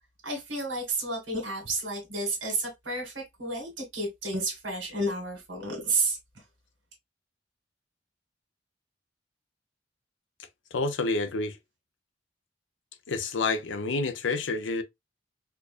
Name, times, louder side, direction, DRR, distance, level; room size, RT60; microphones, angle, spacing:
voice 1, 0.2-6.2, right 2 dB, 85° right, 1.6 m, -31 dB
voice 2, 10.7-11.6 13.1-14.8, left 3 dB, 75° left, 0.6 m, -28 dB
4.5 x 2.4 x 2.4 m
head